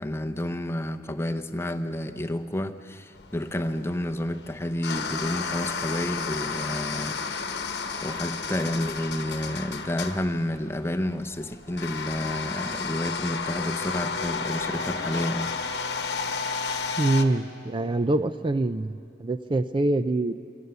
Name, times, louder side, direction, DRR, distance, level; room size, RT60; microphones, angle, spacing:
voice 1, 0.0-7.2 8.0-15.5, left 1 dB, 15° left, 7 dB, 0.7 m, -30 dB
sound 1, 3.1-17.2, left 5 dB, 70° left, 1.1 m, -32 dB
voice 2, 17.0-20.3, right 2 dB, 30° right, 11 dB, 0.4 m, -25 dB
24.0 x 17.5 x 6.9 m, 2.5 s
head